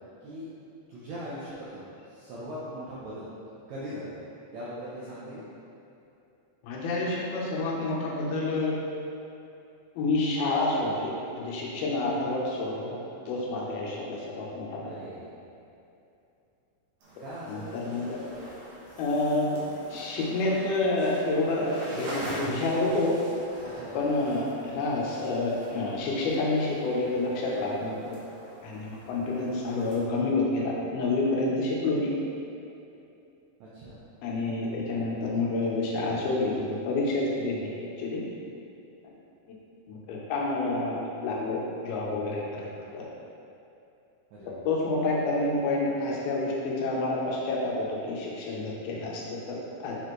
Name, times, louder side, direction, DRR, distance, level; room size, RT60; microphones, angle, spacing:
voice 1, 0.9-3.3 3.7-4.1 4.5-5.4 14.8-15.4 17.2-17.8 23.6-23.9 33.6-34.0 44.3-44.6, equal, 75° right, -9 dB, 1.6 m, -40 dB
voice 2, 6.6-8.8 10.0-13.0 13.3-14.9 17.5-18.2 19.0-19.6 19.9-23.2 23.9-28.2 28.6-32.1 34.2-38.2 39.9-43.0 44.6-50.0, left 2 dB, 90° left, -3 dB, 2.8 m, -28 dB
sound 1, 17.0-30.1, right 1 dB, 60° right, 1.9 m, -45 dB
7.3 x 4.3 x 3.1 m, 2.7 s
omnidirectional pair, 4.2 m